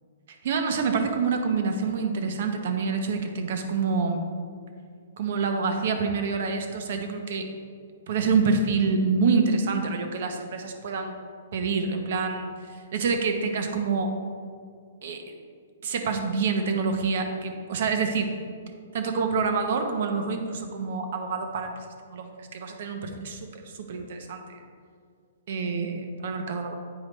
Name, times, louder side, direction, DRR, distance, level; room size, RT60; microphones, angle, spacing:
voice 1, 0.3-4.3 5.2-7.5 8.1-11.2 11.5-14.1 15.0-15.2 15.8-18.3 18.9-24.6 25.5-26.8, right 4 dB, 55° right, 5 dB, 0.9 m, -27 dB
9.1 x 4.8 x 3.2 m, 2.1 s
hypercardioid pair, 155°, 0 cm